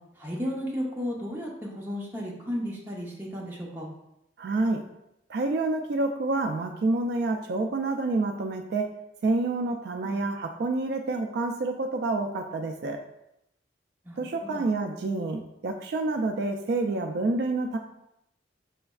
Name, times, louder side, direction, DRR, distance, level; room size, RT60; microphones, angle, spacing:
voice 1, 0.2-3.9 10.0-10.2 14.0-14.6, equal, 10° right, -4 dB, 0.8 m, -34 dB
voice 2, 4.4-4.9 5.3-9.0 9.2-13.0 14.2-17.8, right 2 dB, 60° right, 5 dB, 0.3 m, -28 dB
5.0 x 3.3 x 2.3 m, 0.82 s
head